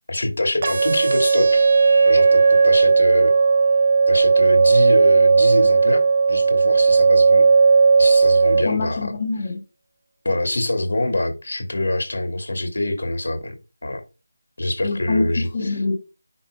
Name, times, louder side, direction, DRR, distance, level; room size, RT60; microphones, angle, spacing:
voice 1, 0.1-1.7 2.0-3.3 4.1-6.0 6.3-7.5 8.0-9.1 10.2-13.6 13.8-14.0 14.6-15.5, left 1 dB, 85° left, 2.4 m, -25 dB
sound 1, 0.6-8.6, right 4 dB, 35° right, 0.8 m, -15 dB
voice 2, 8.6-9.6 14.8-16.0, left 3 dB, 20° left, 0.8 m, -25 dB
9.7 x 4.9 x 2.3 m
figure-of-eight pair, 180°, 0 cm